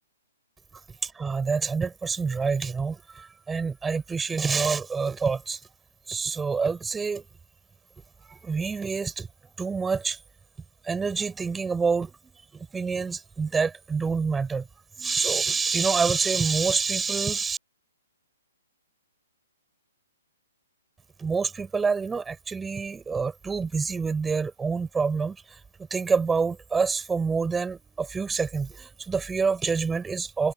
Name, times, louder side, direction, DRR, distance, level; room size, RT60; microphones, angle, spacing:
voice 1, 1.0-5.6 6.1-7.2 8.2-9.3 9.6-10.2 10.8-12.2 12.5-14.7 15.0-17.6 21.2-25.4 25.9-30.5, right 5 dB, 5° right, 7.4 m, -27 dB
hypercardioid pair, 165°, 0 cm